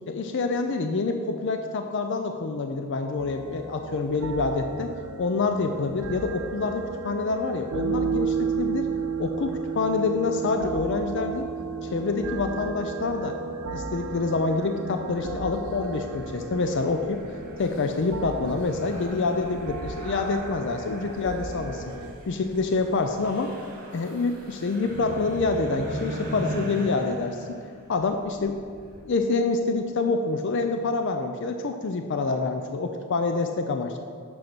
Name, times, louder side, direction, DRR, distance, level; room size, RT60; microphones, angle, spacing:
voice 1, 0.1-4.9 5.2-8.9 9.2-11.5 11.8-13.4 13.7-17.2 17.6-21.9 22.3-23.5 23.9-27.6 27.9-28.6 29.0-34.0, left 3 dB, 60° left, 6 dB, 0.5 m, -27 dB
sound 1, 3.2-22.1, right 5 dB, 85° right, 0.5 m, -34 dB
sound 2, 15.1-29.0, right 1 dB, 40° right, 1.3 m, -40 dB
7.9 x 5.3 x 6.1 m, 2.2 s
head